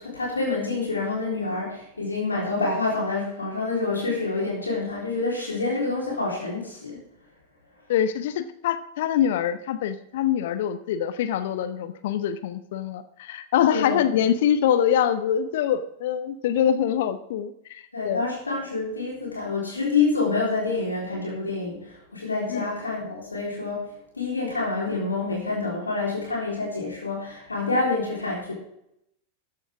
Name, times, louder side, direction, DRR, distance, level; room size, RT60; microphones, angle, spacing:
voice 1, 0.0-7.0 13.7-14.0 17.9-23.9 24.1-28.5, left 3 dB, 80° left, -3 dB, 3.9 m, -27 dB
voice 2, 7.9-18.2 22.5-22.7, left 9 dB, 55° left, 12 dB, 0.7 m, -24 dB
13.5 x 10.5 x 3.6 m, 0.76 s
figure-of-eight pair, 90°, 0 cm